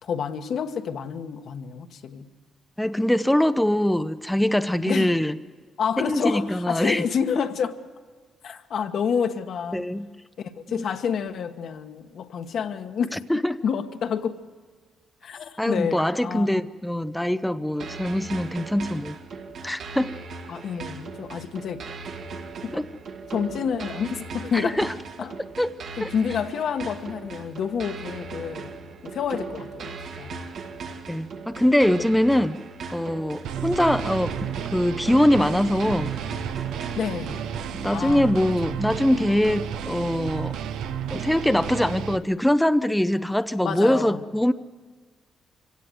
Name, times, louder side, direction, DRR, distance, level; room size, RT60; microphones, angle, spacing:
voice 1, 0.0-2.3 4.9-5.1 5.8-7.8 8.4-9.8 10.4-13.2 13.6-14.3 15.2-16.5 20.5-21.9 22.6-22.8 23.3-24.8 25.2-25.4 26.1-28.7 29.0-30.4 37.0-37.5 37.9-38.3 38.6-38.8 43.6-44.2, left 7 dB, 65° left, 1.3 m, -29 dB
voice 2, 2.8-5.4 6.0-7.0 9.7-10.1 10.7-10.9 13.1-13.6 15.6-19.2 19.6-20.2 22.7-22.9 24.5-24.9 25.6-25.7 26.0-26.1 31.1-32.6 32.9-34.4 34.7-36.1 37.7-40.5 41.1-44.5, left 1 dB, 5° left, 0.6 m, -23 dB
sound 1, 17.8-37.8, right 4 dB, 65° right, 2.0 m, -38 dB
sound 2, 33.4-42.2, right 9 dB, 85° right, 0.9 m, -32 dB
25.0 x 17.0 x 7.9 m
cardioid pair, 90°, 0 cm